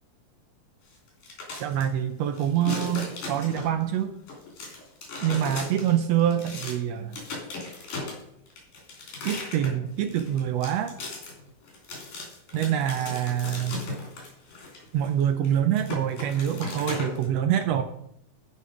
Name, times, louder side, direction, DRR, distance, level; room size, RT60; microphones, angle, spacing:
sound 1, 1.1-1.8 2.3-3.9 4.3-6.8 7.1-17.2, left 3 dB, 85° left, 4.8 m, -36 dB
voice 1, 1.6-4.1 5.2-7.2 9.2-11.0 12.5-13.8 14.9-17.8, right 10 dB, 85° right, 8 dB, 1.5 m, -25 dB
13.0 x 5.6 x 4.9 m, 0.75 s
omnidirectional pair, 3.5 m